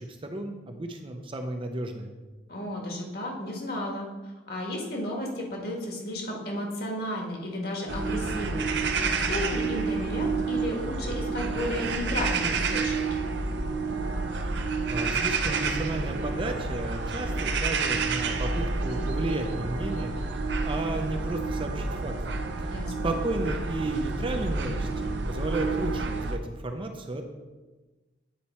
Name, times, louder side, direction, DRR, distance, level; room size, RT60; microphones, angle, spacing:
voice 1, 0.0-2.1 14.9-27.2, right 1 dB, 30° right, 5 dB, 0.6 m, -33 dB
voice 2, 2.5-4.1 4.5-9.0 9.3-13.2 22.7-23.1, left 1 dB, 60° left, 0 dB, 1.6 m, -33 dB
sound 1, 7.9-26.4, right 4 dB, 70° right, 0.6 m, -29 dB
8.9 x 4.2 x 4.3 m, 1.2 s
head